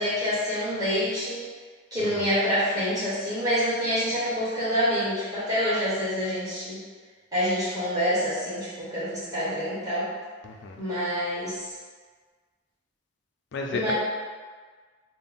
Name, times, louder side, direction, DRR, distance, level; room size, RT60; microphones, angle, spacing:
voice 1, 0.0-1.4 1.9-6.8 7.3-10.1 10.8-11.7 13.7-13.9, equal, 15° right, -11 dB, 1.4 m, -27 dB
voice 2, 2.0-2.3 10.4-10.8 13.5-13.9, left 3 dB, 55° left, 1 dB, 0.4 m, -33 dB
4.1 x 2.1 x 3.5 m, 1.5 s
head